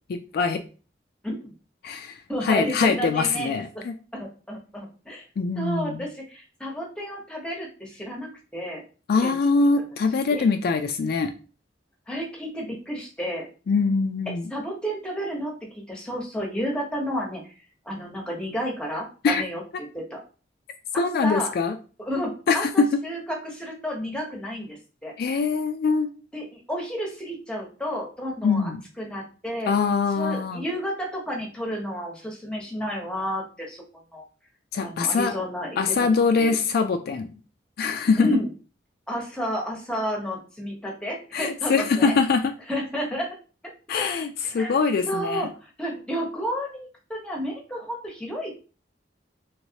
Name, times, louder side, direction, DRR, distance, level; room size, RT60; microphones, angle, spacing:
voice 1, 0.1-0.6 1.8-3.9 5.4-6.1 9.1-11.3 13.7-14.5 19.2-19.4 21.0-21.8 22.5-23.0 25.2-26.1 28.4-28.8 29.7-30.6 34.7-35.4 35.8-37.3 37.8-38.3 41.3-42.5 43.9-45.5, left 4 dB, 55° left, 7 dB, 0.3 m, -23 dB
voice 2, 2.3-3.8 4.1-5.2 5.6-8.8 9.2-9.3 10.3-10.5 12.1-13.5 14.5-17.4 17.8-20.2 20.9-21.5 22.0-25.1 26.3-29.7 30.2-33.8 34.1-34.2 34.8-35.8 36.4-36.5 38.2-38.5 39.1-42.1 42.7-43.3 44.6-44.7 45.1-48.5, equal, 5° left, -1 dB, 0.9 m, -31 dB
3.1 x 3.0 x 2.8 m, 0.36 s
head